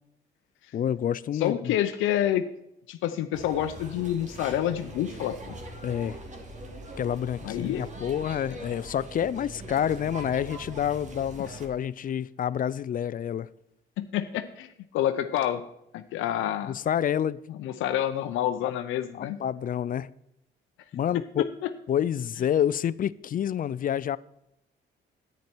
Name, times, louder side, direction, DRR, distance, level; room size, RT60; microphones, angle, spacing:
voice 1, 0.7-1.8 5.8-6.2 7.0-13.5 16.7-17.4 18.6-18.7 19.1-20.1 20.9-21.5 21.9-24.2, left 9 dB, 45° left, 0.4 m, -28 dB
voice 2, 1.3-2.4 2.9-5.6 7.4-7.8 14.0-14.7 14.9-15.6 15.9-16.8 17.5-19.4 21.4-21.7, left 11 dB, 90° left, 0.6 m, -28 dB
sound 1, 3.3-11.7, right 1 dB, 35° right, 1.9 m, -42 dB
10.5 x 9.3 x 4.5 m
cardioid pair, 90°, 20 cm